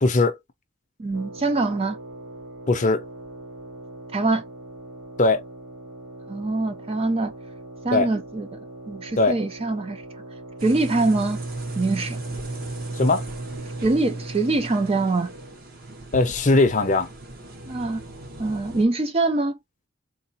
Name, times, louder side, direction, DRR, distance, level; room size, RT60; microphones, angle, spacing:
voice 1, 0.0-0.4 2.7-3.0 5.2-5.4 7.9-8.1 9.2-9.4 13.0-13.2 16.1-17.1, left 2 dB, 35° left, 0.6 m, -19 dB
voice 2, 1.0-2.0 4.1-4.4 6.3-7.3 7.8-8.5 8.9-10.0 10.6-11.4 11.8-12.2 13.8-15.3 17.7-18.0 18.4-19.6, right 2 dB, 25° right, 0.4 m, -23 dB
sound 1, 1.1-15.6, right 2 dB, 75° right, 2.1 m, -42 dB
sound 2, 10.6-18.9, right 2 dB, 45° right, 0.9 m, -36 dB
4.0 x 2.4 x 2.7 m
head